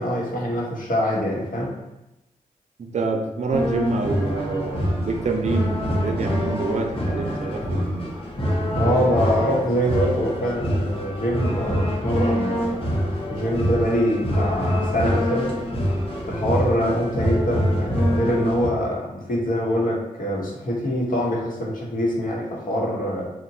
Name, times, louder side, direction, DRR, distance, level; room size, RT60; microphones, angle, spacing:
voice 1, 0.0-1.8 8.8-15.5 16.3-23.3, equal, 65° left, -3 dB, 0.9 m, -24 dB
voice 2, 2.8-7.8 16.8-16.9, right 3 dB, 50° right, 3 dB, 0.5 m, -27 dB
sound 1, 3.5-18.7, equal, 35° left, 0.7 m, -25 dB
2.9 x 2.1 x 2.7 m, 0.93 s
supercardioid pair, 40°, 15 cm